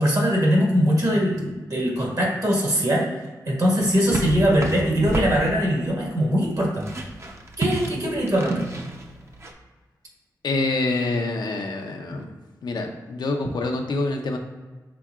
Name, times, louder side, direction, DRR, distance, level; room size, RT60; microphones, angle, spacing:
voice 1, 0.0-3.1 3.4-6.9 7.6-8.6, equal, 55° right, -2 dB, 1.4 m, -21 dB
sound 1, 3.8-9.5, right 2 dB, 40° right, 0.6 m, -31 dB
voice 2, 10.4-12.3 12.6-14.4, left 2 dB, 80° left, 3 dB, 0.6 m, -26 dB
5.8 x 3.5 x 2.4 m, 1.3 s
cardioid pair, 65°, 7 cm